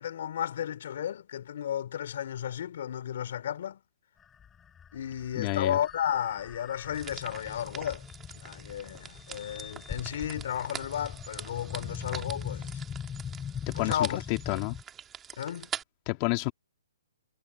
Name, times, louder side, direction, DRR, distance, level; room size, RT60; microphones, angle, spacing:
voice 1, 0.0-3.8 4.9-12.8 13.7-14.2 14.5-14.7 15.4-15.7, left 10 dB, 55° left, 4.1 m, -33 dB
sound 1, 4.2-14.8, left 7 dB, 10° left, 4.4 m, -42 dB
voice 2, 5.4-5.8 13.7-14.8 16.1-16.5, left 23 dB, 30° left, 2.1 m, -30 dB
sound 2, 6.9-15.8, right 9 dB, 15° right, 2.2 m, -44 dB
hypercardioid pair, 160°, 0 cm